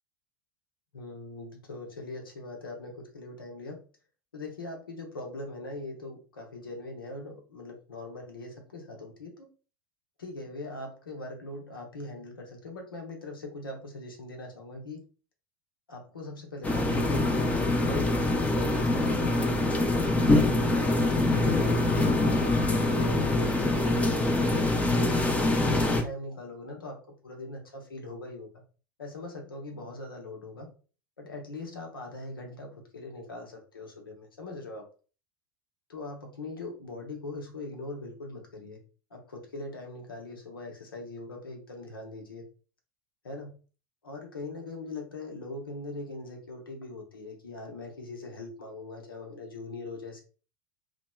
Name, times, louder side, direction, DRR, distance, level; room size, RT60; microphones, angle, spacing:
voice 1, 0.9-3.8 4.3-9.5 10.2-15.0 15.9-18.1 18.4-19.5 19.9-24.5 25.1-27.0 27.2-28.5 29.0-30.7 31.2-34.8 35.9-38.8 39.1-42.4 43.2-43.6 44.0-50.2, left 2 dB, 85° left, 1 dB, 0.7 m, -41 dB
sound 1, 16.6-26.0, left 2 dB, 10° left, 0.6 m, -24 dB
2.9 x 2.1 x 2.2 m, 0.37 s
hypercardioid pair, 85°, 11 cm